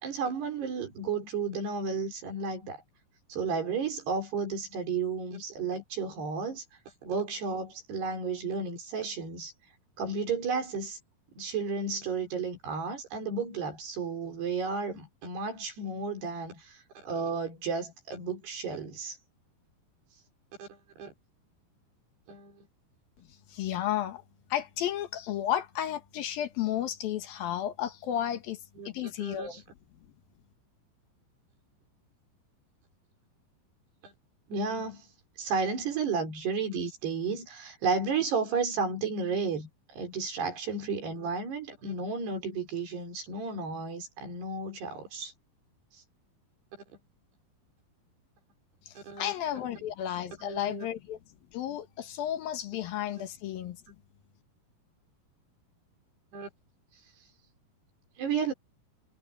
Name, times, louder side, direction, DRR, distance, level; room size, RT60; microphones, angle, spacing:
voice 1, 0.0-2.8 3.3-6.6 7.0-9.5 10.0-11.0 11.3-19.2 20.6-20.7 21.0-21.1 22.3-22.7 28.8-28.9 29.2-29.6 34.0-34.1 34.5-35.1 35.4-45.3 49.0-49.3 50.4-50.9 53.9-54.0 56.3-56.5 58.2-58.5, right 4 dB, 90° right, 7.2 m, -33 dB
voice 2, 23.5-24.2 24.5-28.6 28.9-29.6 48.9-51.2 51.5-53.8, left 11 dB, 70° left, 3.1 m, -33 dB
omnidirectional pair, 4.6 m